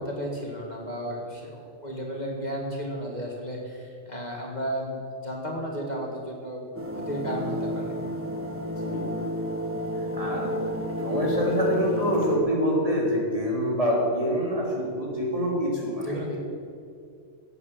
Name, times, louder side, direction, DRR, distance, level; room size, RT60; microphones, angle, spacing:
voice 1, 0.0-6.7 6.9-7.8 16.0-16.4, equal, 35° left, -2 dB, 2.1 m, -33 dB
sound 1, 6.8-12.4, equal, 10° right, 1.6 m, -30 dB
voice 2, 8.6-9.1 10.1-10.6 11.0-16.4, equal, 30° right, -4 dB, 3.5 m, -26 dB
17.0 x 8.1 x 7.6 m, 2.3 s
omnidirectional pair, 1.2 m